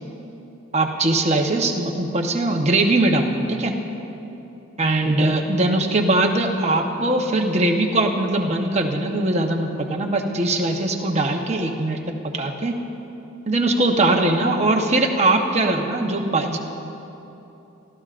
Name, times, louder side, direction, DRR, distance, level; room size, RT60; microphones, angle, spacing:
voice 1, 0.7-3.7 4.8-12.8 13.5-16.6, right 2 dB, 30° right, 2 dB, 1.0 m, -21 dB
30.0 x 14.5 x 2.5 m, 3.0 s
head